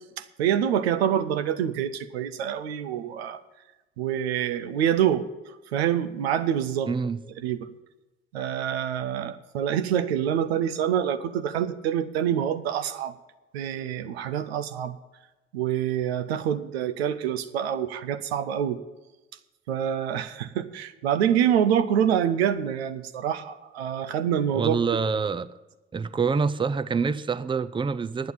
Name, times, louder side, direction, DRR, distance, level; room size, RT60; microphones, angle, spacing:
voice 1, 0.4-3.4 4.0-5.2 5.7-6.9 7.4-7.6 8.3-13.1 13.5-15.0 15.5-18.8 19.7-24.8, right 9 dB, 80° right, 0.6 m, -26 dB
voice 2, 6.9-7.2 24.5-25.5 25.9-28.3, right 5 dB, 15° right, 0.5 m, -26 dB
9.5 x 9.3 x 8.6 m
figure-of-eight pair, 50°, 31 cm